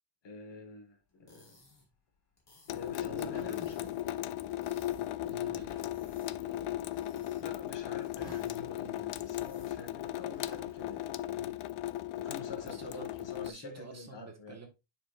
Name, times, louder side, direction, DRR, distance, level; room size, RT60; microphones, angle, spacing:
voice 1, 0.2-1.6 2.7-4.1 7.4-11.6 12.2-14.6, left 3 dB, 60° left, 1.6 m, -48 dB
sound 1, 1.1-10.0, left 1 dB, 30° left, 2.5 m, -63 dB
Water tap faucet / Sink (filling or washing) / Drip, 2.7-13.5, left 13 dB, 80° left, 0.6 m, -37 dB
voice 2, 2.9-3.8 5.2-5.7 12.2-13.1 13.4-14.7, right 4 dB, 30° right, 1.4 m, -49 dB
sound 2, 3.3-11.2, right 1 dB, 10° left, 3.3 m, -58 dB
9.8 x 4.4 x 2.4 m
wide cardioid pair, 160°, 49 cm